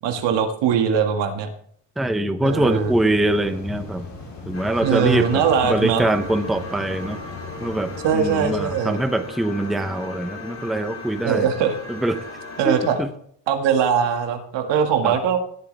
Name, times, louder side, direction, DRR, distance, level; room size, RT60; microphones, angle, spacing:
voice 1, 0.0-1.5 2.4-2.9 4.8-6.0 8.0-9.0 11.2-11.8 12.6-13.0 13.5-15.4, right 7 dB, 80° right, 6 dB, 1.9 m, -21 dB
voice 2, 2.0-4.0 4.5-7.2 7.6-11.5 11.9-12.2 12.6-13.1 15.0-15.2, right 1 dB, ahead, 8 dB, 0.7 m, -23 dB
sound 1, 2.5-8.7, left 4 dB, 70° left, 5.8 m, -38 dB
sound 2, 4.5-13.0, left 2 dB, 40° left, 6.3 m, -37 dB
18.0 x 8.1 x 3.4 m, 0.63 s
cardioid pair, 130°, 43 cm